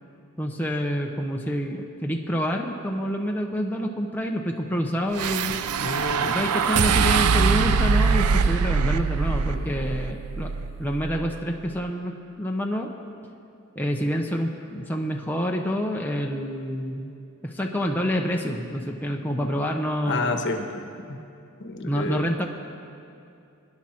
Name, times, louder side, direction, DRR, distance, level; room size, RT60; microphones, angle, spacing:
voice 1, 0.4-5.6 6.2-10.5 10.8-12.9 13.8-17.1 17.4-20.4 21.8-22.4, equal, 10° left, 0 dB, 0.8 m, -27 dB
sound 1, 5.1-11.5, right 5 dB, 85° right, 0.6 m, -23 dB
voice 2, 5.8-6.4 9.5-9.7 20.0-20.7 21.1-21.2 21.6-22.3, left 3 dB, 55° left, 5 dB, 1.2 m, -30 dB
24.5 x 10.5 x 4.4 m, 2.5 s
head